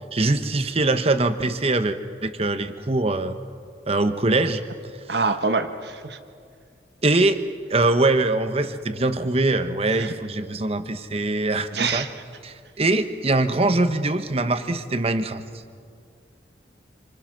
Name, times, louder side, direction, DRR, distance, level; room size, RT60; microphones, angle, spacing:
voice 1, 0.1-3.4 3.9-4.6 5.1-5.2 7.0-7.4 7.7-12.0 12.4-15.4, right 2 dB, 30° right, 9 dB, 1.0 m, -22 dB
voice 2, 5.1-6.2 9.9-10.1 11.7-12.1, right 4 dB, 60° right, 8 dB, 1.3 m, -25 dB
27.5 x 26.5 x 6.2 m, 2.2 s
head